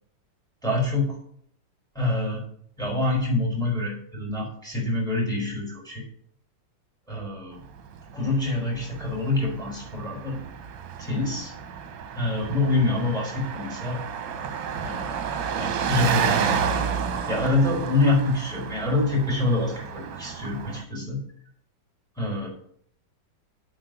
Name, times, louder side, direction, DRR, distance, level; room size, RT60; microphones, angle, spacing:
voice 1, 0.6-1.2 1.9-2.4 2.8-6.0 7.1-7.6 8.1-10.4 11.0-11.5 12.1-14.0 14.8-15.3 15.5-16.6 17.3-21.2 22.2-22.5, left 2 dB, ahead, 0 dB, 4.4 m, -26 dB
Car passing by, 7.6-20.8, right 7 dB, 70° right, 1.5 m, -31 dB
8.3 x 5.3 x 7.7 m, 0.65 s
omnidirectional pair, 2.1 m